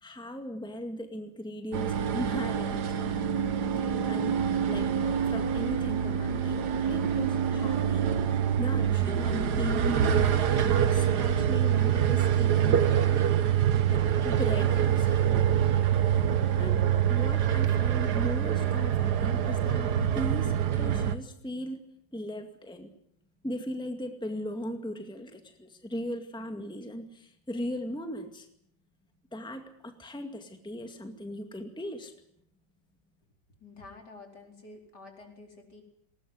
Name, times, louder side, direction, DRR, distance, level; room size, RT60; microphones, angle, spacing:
voice 1, 0.0-3.3 4.1-4.4 4.7-4.9 5.2-6.6 6.9-8.1 8.6-13.6 13.9-15.3 16.5-19.9 20.1-21.8 22.1-22.9 23.4-28.5 29.3-32.1, equal, 5° left, 6 dB, 2.1 m, -38 dB
sound 1, 1.7-21.1, right 9 dB, 65° right, 1.7 m, -25 dB
voice 2, 33.6-35.8, left 3 dB, 65° left, 3 dB, 5.1 m, -49 dB
20.0 x 20.0 x 9.7 m, 0.72 s
omnidirectional pair, 1.9 m